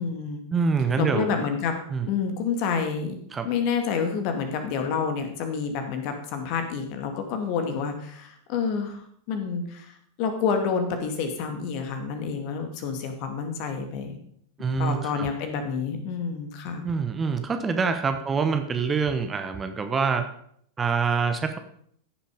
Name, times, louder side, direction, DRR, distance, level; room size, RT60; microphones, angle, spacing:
voice 1, 0.0-0.4 1.0-1.8 2.1-3.2 3.4-14.2 14.8-16.8, left 6 dB, 45° left, 6 dB, 2.2 m, -28 dB
voice 2, 0.5-1.3 1.9-2.1 3.3-3.5 14.6-15.3 16.8-20.3 20.8-21.6, right 5 dB, 20° right, 7 dB, 1.1 m, -25 dB
15.0 x 7.2 x 5.2 m, 0.67 s
figure-of-eight pair, 90°, 0 cm